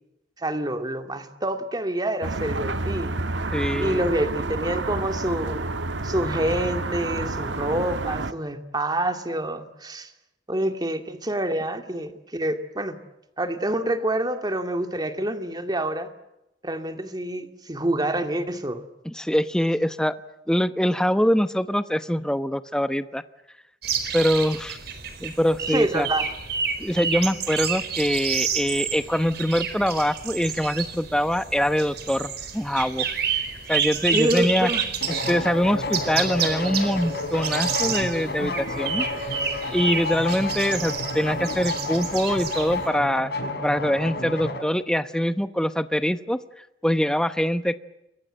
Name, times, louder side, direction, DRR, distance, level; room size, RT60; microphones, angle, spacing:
voice 1, 0.4-3.2 3.8-5.7 6.0-10.1 10.5-13.0 13.4-16.1 16.6-18.8 25.7-26.3 34.1-34.9, right 1 dB, 20° right, 7 dB, 2.4 m, -27 dB
sound 1, 2.2-8.3, right 2 dB, 75° right, 1.5 m, -29 dB
voice 2, 3.5-4.1 19.0-20.2 20.5-23.2 24.1-24.8 25.2-26.1 26.8-33.1 33.7-34.7 35.3-39.1 39.7-43.3 43.6-46.4 46.8-47.8, equal, 5° left, 11 dB, 0.9 m, -24 dB
sound 2, 23.8-42.9, right 7 dB, 60° right, 4.5 m, -30 dB
sound 3, 35.0-44.6, left 2 dB, 60° left, 5.4 m, -30 dB
29.5 x 23.5 x 7.7 m, 0.90 s
head